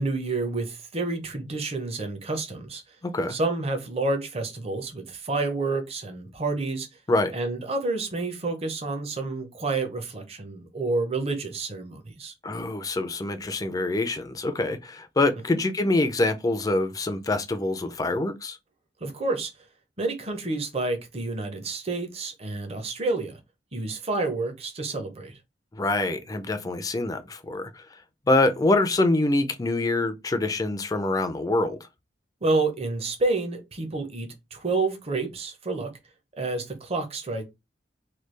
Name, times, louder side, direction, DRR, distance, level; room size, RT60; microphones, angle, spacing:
voice 1, 0.0-2.8 3.3-6.9 7.3-12.3 19.0-19.5 20.0-23.4 23.7-25.4 32.4-35.9 36.4-37.4, right 3 dB, 35° right, 0.7 m, -29 dB
voice 2, 3.0-3.4 7.1-7.3 12.4-18.6 25.7-27.8 28.3-31.8, left 2 dB, 20° left, 0.4 m, -25 dB
3.2 x 2.3 x 3.2 m
head